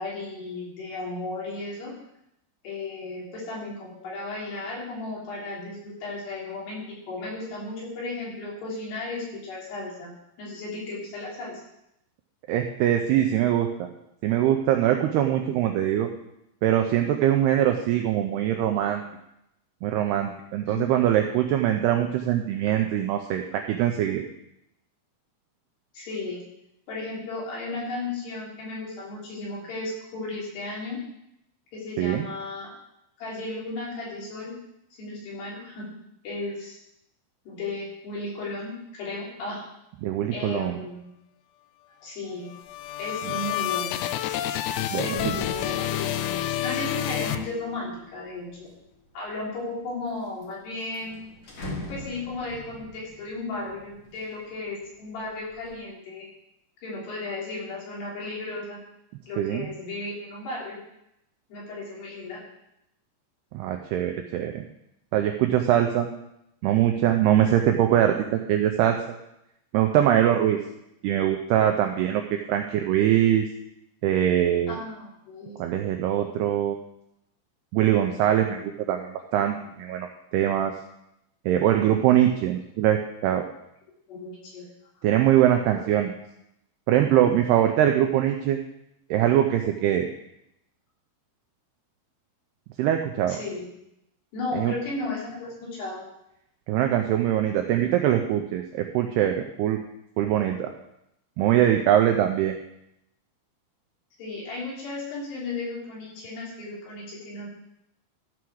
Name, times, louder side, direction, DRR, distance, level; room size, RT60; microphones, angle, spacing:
voice 1, 0.0-1.9 2.6-10.1 10.4-11.6 20.7-21.4 25.9-26.4 26.9-31.0 31.7-32.7 33.2-34.5 35.0-35.9 36.2-36.8 37.5-39.7 40.3-41.1 42.0-42.5 43.0-44.0 45.0-48.7 49.1-51.2 51.9-56.3 56.8-58.8 59.3-60.8 61.5-62.4 74.7-75.6 84.1-84.7 85.7-85.8 93.3-93.7 94.3-96.0 104.2-107.5, left 2 dB, 65° left, -5 dB, 5.5 m, -35 dB
voice 2, 12.5-13.9 14.2-16.1 16.6-19.0 19.8-24.3 32.0-32.3 40.0-40.8 44.9-45.2 59.4-59.7 63.5-64.6 65.1-66.1 66.6-69.0 69.7-70.6 71.0-73.5 74.0-74.8 75.6-76.8 77.7-80.1 80.3-80.7 81.5-83.5 85.0-86.1 86.9-88.6 89.1-90.1 92.8-93.4 94.5-94.7 96.7-99.8 100.2-100.7 101.4-102.6, right 11 dB, 85° right, 4 dB, 2.3 m, -22 dB
sound 1, 42.4-48.0, left 12 dB, 85° left, 2.9 m, -29 dB
sound 2, 42.7-43.1 43.4-48.8 49.4-50.1 50.4-50.5 50.8-54.7 55.1-55.7, left 1 dB, 45° left, 1.9 m, -41 dB
13.5 x 5.8 x 6.3 m, 0.82 s
omnidirectional pair, 5.3 m